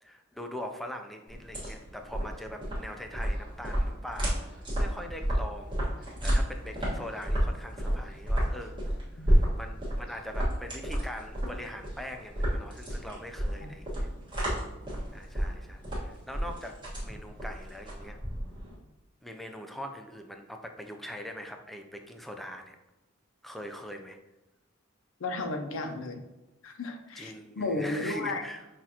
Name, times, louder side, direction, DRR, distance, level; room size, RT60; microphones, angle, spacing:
voice 1, 0.0-14.1 15.1-16.8 17.0-18.2 19.2-22.8 23.4-24.2 27.2-28.7, equal, ahead, 4 dB, 0.3 m, -42 dB
sound 1, 1.3-18.8, equal, 25° right, 1.4 m, -31 dB
voice 2, 25.2-26.3 26.6-28.4, left 2 dB, 75° left, 5 dB, 0.6 m, -33 dB
5.9 x 2.5 x 2.8 m, 1.0 s
head